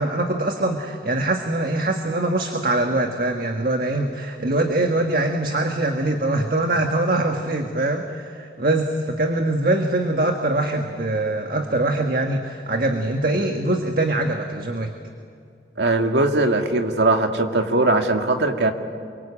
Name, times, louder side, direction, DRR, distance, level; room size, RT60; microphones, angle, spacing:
voice 1, 0.0-14.9, right 2 dB, 50° right, 4 dB, 1.6 m, -23 dB
voice 2, 15.8-18.7, right 2 dB, 80° right, 4 dB, 2.2 m, -20 dB
28.5 x 24.0 x 8.7 m, 2.3 s
head